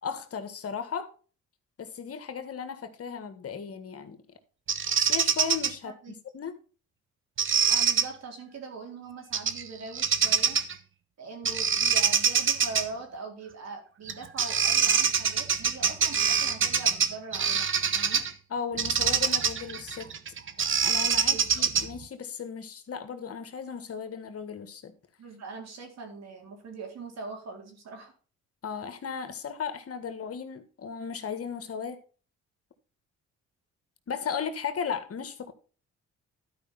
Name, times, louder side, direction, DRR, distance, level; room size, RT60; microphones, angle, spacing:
voice 1, 0.0-1.1 1.8-4.2 4.9-6.6 18.5-20.1 20.6-24.9 28.6-32.0 34.1-35.5, left 6 dB, 50° left, 1.6 m, -36 dB
Bird vocalization bird call bird song, 4.7-5.7 7.4-8.1 9.3-9.6 10.0-10.7 11.5-12.9 14.1-14.2 14.4-18.3 18.8-22.0, right 6 dB, 40° right, 1.1 m, -25 dB
voice 2, 5.8-6.2 7.7-10.6 11.2-18.3 21.3-21.7 25.2-28.1, right 4 dB, 60° right, 4.1 m, -42 dB
12.0 x 5.1 x 5.5 m
cardioid pair, 90°, 30 cm